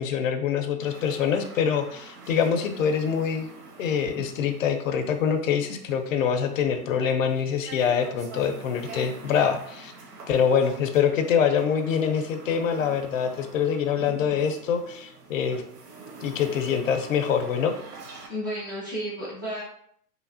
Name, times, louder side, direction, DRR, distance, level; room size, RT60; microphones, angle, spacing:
voice 1, 0.0-3.5 3.8-9.9 10.3-15.6 16.2-17.7, left 7 dB, 60° left, 7 dB, 0.5 m, -25 dB
sound 1, 0.8-18.3, right 3 dB, 80° right, 0.8 m, -45 dB
voice 2, 18.3-19.6, equal, 15° right, -8 dB, 0.3 m, -32 dB
3.1 x 2.3 x 2.4 m, 0.67 s
hypercardioid pair, 155°, 46 cm